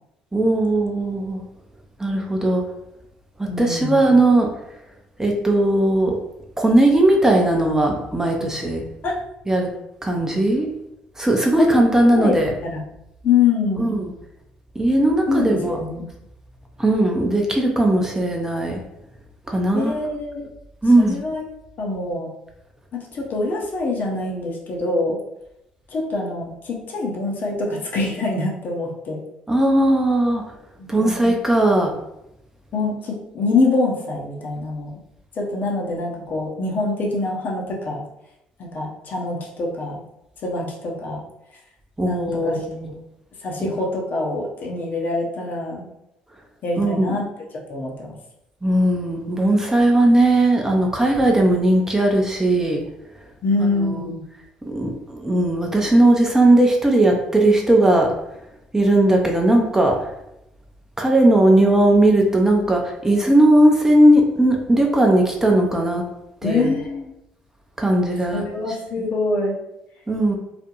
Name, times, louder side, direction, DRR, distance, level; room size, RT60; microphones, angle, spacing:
voice 1, 0.3-1.4 2.0-2.7 3.4-4.5 5.2-6.2 6.6-8.8 9.5-9.7 10.0-10.7 11.2-12.5 13.8-14.1 14.8-15.8 16.8-18.8 19.5-20.0 20.8-21.2 29.5-30.4 30.9-31.9 42.0-42.9 43.6-43.7 46.8-47.2 48.6-52.8 53.6-54.1 54.6-58.1 58.7-60.1 61.0-66.0 66.4-66.7 67.8-68.8 70.1-70.4, right 1 dB, 10° right, 1 dB, 0.5 m, -18 dB
voice 2, 3.5-4.0 9.0-9.1 11.6-12.4 12.6-12.8 13.2-13.9 15.3-16.0 19.7-20.5 21.0-21.4 21.8-22.3 22.9-25.2 25.9-29.2 30.8-31.2 32.7-35.0 35.4-38.0 38.6-40.0 40.4-41.2 42.0-42.6 43.4-45.9 46.6-47.2 47.7-48.1 53.4-54.2 66.4-67.1 68.3-69.6, left 3 dB, 50° left, -1 dB, 0.7 m, -24 dB
2.4 x 2.1 x 2.9 m, 0.84 s
hypercardioid pair, 55°, 4 cm